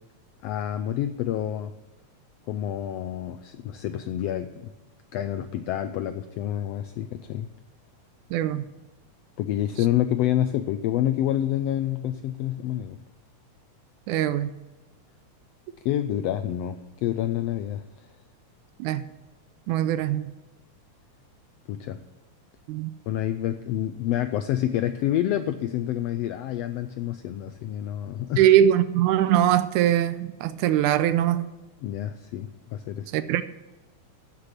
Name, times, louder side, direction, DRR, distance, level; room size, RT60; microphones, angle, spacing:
voice 1, 0.4-1.7 2.5-4.7 5.1-7.5 9.4-13.0 15.8-17.8 21.7-22.0 23.1-28.5 31.8-33.1, left 12 dB, 90° left, 1.4 m, -28 dB
voice 2, 8.3-8.6 14.1-14.5 18.8-19.0 19.7-20.3 22.7-22.9 28.4-31.5 33.1-33.4, right 11 dB, 85° right, 2.0 m, -21 dB
15.0 x 6.8 x 5.7 m
omnidirectional pair, 3.5 m